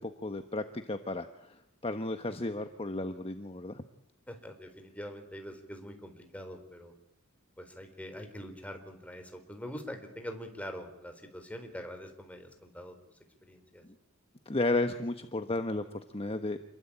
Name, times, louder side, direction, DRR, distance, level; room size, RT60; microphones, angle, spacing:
voice 1, 0.0-3.8 13.8-13.9 14.5-16.6, left 2 dB, 30° left, 8 dB, 1.2 m, -33 dB
voice 2, 4.3-6.9 7.6-13.0 13.4-13.8, equal, 5° left, 5 dB, 4.1 m, -44 dB
28.5 x 22.0 x 8.7 m, 0.86 s
head